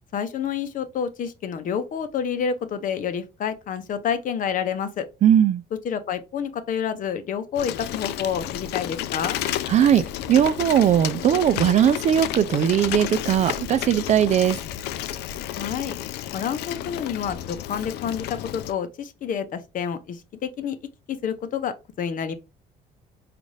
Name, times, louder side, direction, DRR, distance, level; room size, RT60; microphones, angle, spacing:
voice 1, 0.1-5.1 5.8-9.4 15.5-16.0 16.3-20.8 21.1-22.3, left 7 dB, 50° left, 0.7 m, -28 dB
voice 2, 5.2-5.6 9.7-14.6, right 10 dB, 45° right, 0.4 m, -19 dB
Bicycle, 7.6-18.7, left 12 dB, 80° left, 0.4 m, -31 dB
5.2 x 2.5 x 3.2 m
cardioid pair, 110°, 17 cm